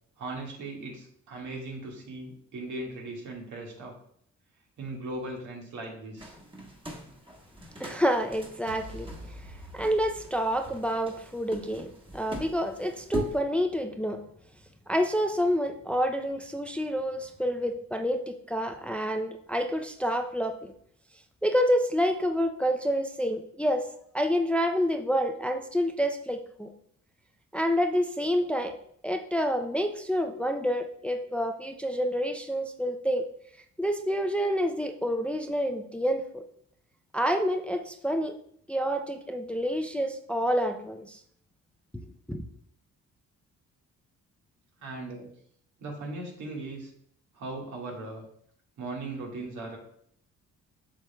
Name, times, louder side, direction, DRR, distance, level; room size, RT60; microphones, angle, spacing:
voice 1, 0.2-4.0 4.8-6.3 44.8-45.3 45.8-46.9 47.3-48.2 48.8-49.8, right 2 dB, 75° right, -1 dB, 1.9 m, -38 dB
sound 1, 6.2-13.4, right 1 dB, 15° right, 1.4 m, -42 dB
voice 2, 7.8-14.2 14.9-20.7 21.4-23.9 24.1-26.7 27.5-28.7 29.0-33.2 33.8-36.4 37.1-38.4 38.7-41.2 42.3-42.4, equal, 5° left, 5 dB, 0.5 m, -28 dB
sound 2, 8.7-11.0, right 1 dB, 55° right, 0.9 m, -45 dB
7.4 x 6.3 x 2.3 m, 0.66 s
cardioid pair, 90°, 30 cm